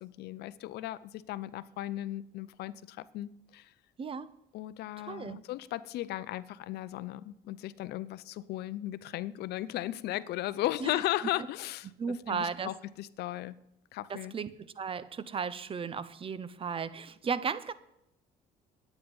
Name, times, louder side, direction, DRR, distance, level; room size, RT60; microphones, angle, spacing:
voice 1, 0.0-3.7 4.5-11.9 12.3-13.6 13.9-14.3, left 15 dB, 75° left, 0.5 m, -36 dB
voice 2, 4.0-4.3 5.0-5.4 10.8-11.0 12.0-12.7 14.1-17.7, right 6 dB, 35° right, 0.6 m, -35 dB
10.5 x 9.1 x 5.3 m
cardioid pair, 110°, 17 cm